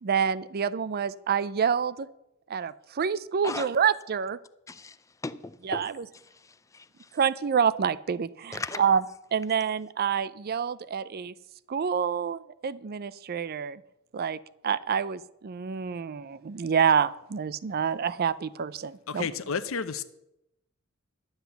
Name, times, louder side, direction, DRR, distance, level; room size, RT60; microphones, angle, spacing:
voice 1, 0.0-2.1 2.5-4.4 5.6-6.1 7.1-9.0 9.3-11.3 11.7-13.8 14.1-19.3, right 7 dB, 45° right, 0.4 m, -27 dB
voice 2, 4.7-5.0 5.2-5.9 6.3-7.2 8.5-8.8, left 3 dB, 15° left, 0.4 m, -38 dB
voice 3, 19.1-20.0, left 5 dB, 70° left, 0.8 m, -31 dB
11.0 x 8.0 x 7.0 m
head